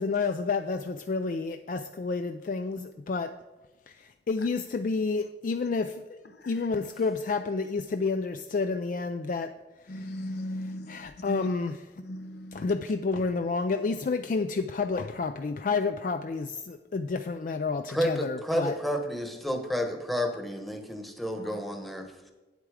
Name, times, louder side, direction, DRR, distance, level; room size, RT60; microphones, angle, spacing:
voice 1, 0.0-3.3 3.9-4.0 4.3-6.2 6.5-9.5 10.9-11.8 12.5-18.7, left 4 dB, 45° left, 0.3 m, -30 dB
voice 2, 9.9-11.5 12.0-12.7 21.4-21.5, equal, 65° left, 0.7 m, -37 dB
voice 3, 17.9-22.3, equal, ahead, 1.0 m, -31 dB
9.0 x 8.2 x 4.9 m
head